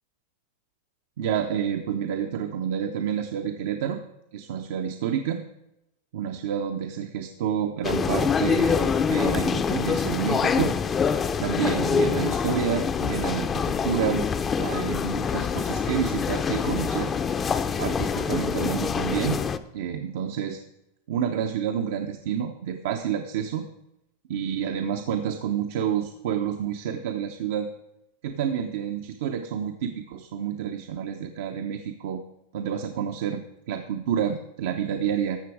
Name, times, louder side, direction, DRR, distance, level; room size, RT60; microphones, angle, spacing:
voice 1, 1.2-4.0 4.3-5.4 6.1-10.7 11.4-14.3 14.6-17.1 17.8-19.4 19.7-20.6 21.1-23.7 24.3-27.7 28.2-32.2 32.5-35.4, right 8 dB, 70° right, 5 dB, 0.8 m, -29 dB
sound 1, 7.8-19.6, left 6 dB, 25° left, 0.6 m, -25 dB
13.0 x 6.9 x 4.8 m, 0.86 s
hypercardioid pair, 120°, 0 cm